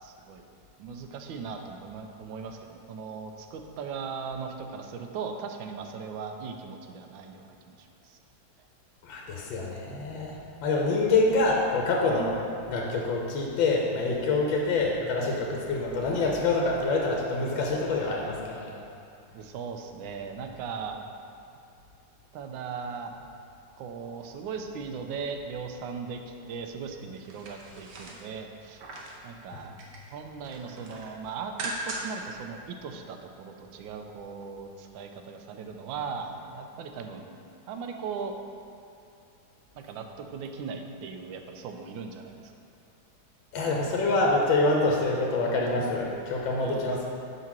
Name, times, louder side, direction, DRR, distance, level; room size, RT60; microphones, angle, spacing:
voice 1, 0.0-0.5 0.8-8.2 19.3-21.0 22.3-23.1 23.8-28.8 29.2-29.7 30.1-37.3 37.7-38.3 39.7-42.5 46.6-46.8, right 5 dB, 90° right, 5 dB, 1.3 m, -38 dB
voice 2, 9.0-12.4 12.7-18.7 29.5-29.6 43.5-47.1, left 3 dB, 85° left, -1 dB, 1.5 m, -26 dB
sound 1, 27.1-29.2 29.6-30.1 30.4-32.3 32.6-32.7, right 2 dB, 70° right, 1.4 m, -39 dB
5.5 x 4.0 x 5.9 m, 2.7 s
omnidirectional pair, 2.0 m